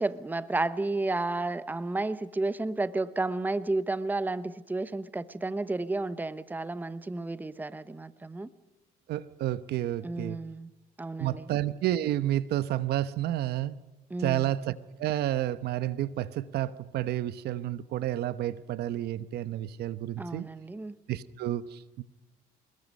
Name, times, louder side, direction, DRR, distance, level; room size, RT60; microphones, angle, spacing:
voice 1, 0.0-8.5 10.0-10.7 11.0-11.5 14.1-14.5 20.2-20.9, right 2 dB, 10° right, 0.9 m, -32 dB
voice 2, 9.1-10.4 11.2-13.8 14.2-14.7 15.0-20.5 21.1-22.0, right 13 dB, 70° right, 1.0 m, -30 dB
26.0 x 21.5 x 5.4 m
cardioid pair, 110°, 17 cm